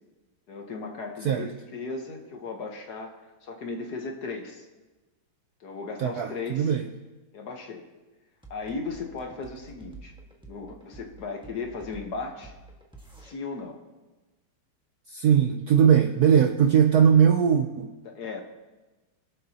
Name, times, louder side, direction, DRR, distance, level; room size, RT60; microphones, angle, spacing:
voice 1, 0.5-4.7 5.6-6.7 7.3-7.8 8.5-10.1 10.5-12.5 13.2-13.8 18.0-18.4, left 4 dB, 55° left, 3 dB, 1.5 m, -36 dB
voice 2, 6.0-6.8 15.1-17.9, right 8 dB, 70° right, 5 dB, 0.9 m, -20 dB
sound 1, 8.4-13.3, right 3 dB, 5° right, 1.1 m, -48 dB
23.0 x 7.7 x 2.8 m, 1.2 s
omnidirectional pair, 2.2 m